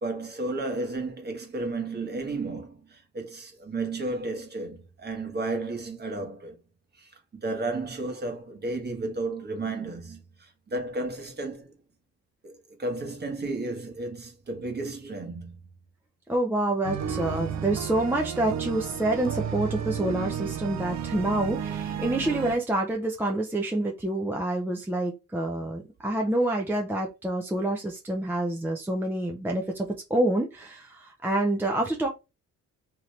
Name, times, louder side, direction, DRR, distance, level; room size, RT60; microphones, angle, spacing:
voice 1, 0.0-6.6 7.0-11.7 12.4-15.5, right 2 dB, 35° right, 1.2 m, -33 dB
voice 2, 16.3-32.1, right 1 dB, 5° right, 0.5 m, -27 dB
sound 1, 16.8-22.6, right 8 dB, 60° right, 0.5 m, -32 dB
2.9 x 2.5 x 3.2 m
cardioid pair, 90°, 30 cm